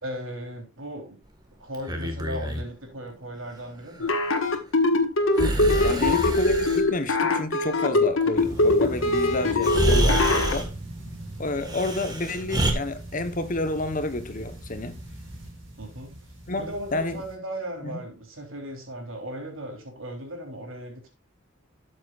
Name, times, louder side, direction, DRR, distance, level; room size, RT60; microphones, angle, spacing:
voice 1, 0.0-1.2 1.6-4.1 5.8-6.2 15.8-16.2 16.6-21.1, right 1 dB, 80° right, 3.4 m, -37 dB
Breathing, 1.7-2.7 5.3-6.8 9.0-9.1 9.6-10.7 11.6-12.7, right 1 dB, 20° right, 1.6 m, -27 dB
sound 1, 4.0-10.6, left 2 dB, 80° left, 1.6 m, -22 dB
voice 2, 5.8-10.7 11.4-15.0 16.5-16.6 16.9-17.2 17.8-18.0, left 2 dB, 40° left, 1.0 m, -30 dB
sound 2, 8.4-17.4, right 1 dB, 65° right, 5.1 m, -40 dB
12.5 x 7.8 x 2.4 m
head